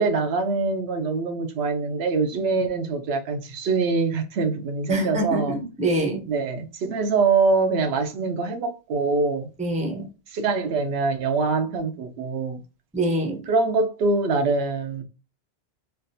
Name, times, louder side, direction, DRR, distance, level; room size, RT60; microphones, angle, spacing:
voice 1, 0.0-5.6 6.3-9.5 9.9-10.0 10.3-12.6 13.5-15.0, right 4 dB, 80° right, 0.8 m, -24 dB
voice 2, 4.9-6.2 9.6-10.1 12.9-13.4, right 1 dB, 10° right, 0.5 m, -25 dB
3.3 x 2.3 x 2.6 m
omnidirectional pair, 1.1 m